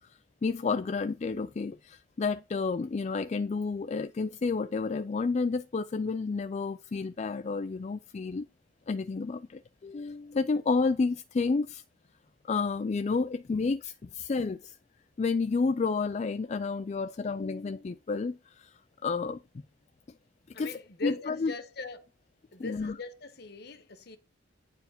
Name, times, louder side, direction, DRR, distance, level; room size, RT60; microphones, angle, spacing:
voice 1, 0.4-8.5 8.9-11.8 12.4-14.8 15.2-18.7 19.0-19.4 20.6-21.5 22.6-23.0, left 4 dB, 35° left, 0.3 m, -30 dB
voice 2, 20.5-22.0 22.5-24.2, left 4 dB, 55° left, 1.1 m, -40 dB
9.2 x 4.8 x 5.1 m
head